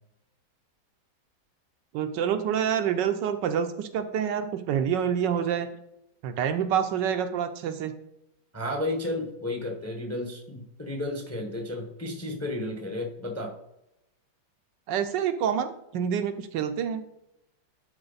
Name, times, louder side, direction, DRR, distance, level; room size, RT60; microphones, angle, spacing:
voice 1, 1.9-5.7 6.2-7.9 14.9-17.0, right 8 dB, 75° right, 9 dB, 1.2 m, -27 dB
voice 2, 8.5-13.5, left 1 dB, 10° left, 3 dB, 0.7 m, -32 dB
11.0 x 4.3 x 3.9 m, 0.83 s
omnidirectional pair, 2.1 m